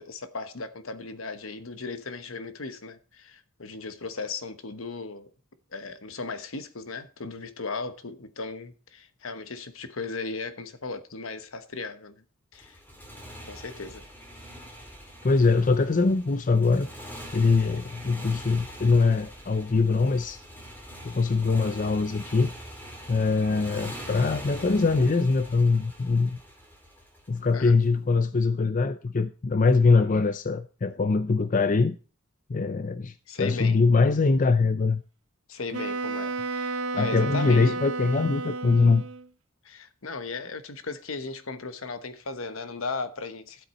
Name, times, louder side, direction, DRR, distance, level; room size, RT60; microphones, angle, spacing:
voice 1, 0.0-5.3 5.7-12.2 12.5-12.8 13.5-14.1 27.5-27.8 33.3-33.8 35.5-37.7 39.6-43.7, left 4 dB, 70° left, 1.2 m, -36 dB
Motorcycle, 12.5-27.7, equal, 10° left, 2.7 m, -43 dB
voice 2, 15.2-16.9 17.3-20.4 21.0-22.5 23.1-26.4 27.3-32.0 32.5-35.0 37.0-39.0, left 4 dB, 40° left, 0.5 m, -23 dB
Wind instrument woodwind instrument, 35.7-39.3, right 3 dB, 80° right, 1.0 m, -32 dB
12.5 x 8.0 x 4.2 m
head